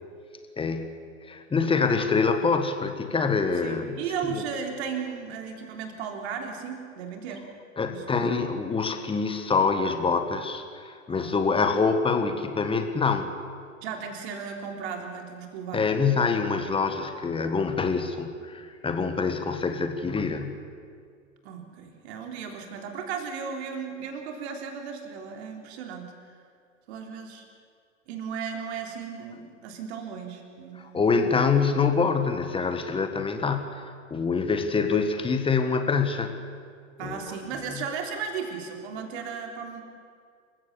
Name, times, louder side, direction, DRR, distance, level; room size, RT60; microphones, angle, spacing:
voice 1, 0.6-1.0 1.2-4.0 4.3-4.4 7.8-13.4 15.7-20.6 30.8-36.4 37.0-37.3, left 5 dB, 15° left, 8 dB, 1.7 m, -25 dB
voice 2, 3.6-7.5 7.9-8.3 11.1-11.7 13.8-15.8 21.4-26.1 26.9-27.4 28.1-31.3 37.0-39.8, right 6 dB, 55° right, 3 dB, 3.6 m, -35 dB
27.5 x 15.5 x 7.0 m, 2.2 s
figure-of-eight pair, 95°, 40 cm